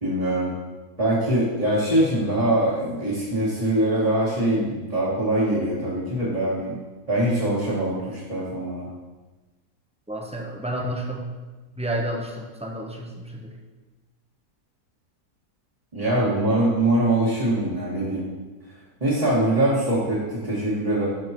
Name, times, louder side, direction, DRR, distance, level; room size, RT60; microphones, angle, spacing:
voice 1, 0.0-0.5 1.0-6.8 7.1-8.9 15.9-18.2 19.0-21.1, right 1 dB, 25° right, -11 dB, 2.0 m, -23 dB
voice 2, 10.1-11.3 11.8-13.6, right 1 dB, 10° right, 0 dB, 0.4 m, -30 dB
12.0 x 5.2 x 3.0 m, 1.2 s
omnidirectional pair, 1.6 m